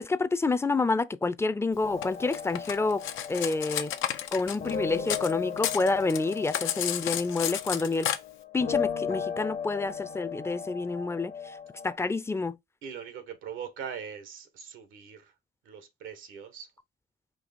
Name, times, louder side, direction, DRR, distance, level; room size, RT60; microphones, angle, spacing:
voice 1, 0.0-3.0 3.3-3.9 4.3-8.1 8.5-11.3 11.8-12.6, left 3 dB, 15° left, 0.5 m, -28 dB
sound 1, 1.8-12.0, left 7 dB, 50° left, 0.8 m, -36 dB
Cutlery silverware, 2.0-5.3 5.6-8.2, left 10 dB, 85° left, 0.6 m, -32 dB
voice 2, 12.8-15.3 15.6-16.7, right 7 dB, 90° right, 1.3 m, -41 dB
4.7 x 2.8 x 4.1 m
cardioid pair, 90°, 20 cm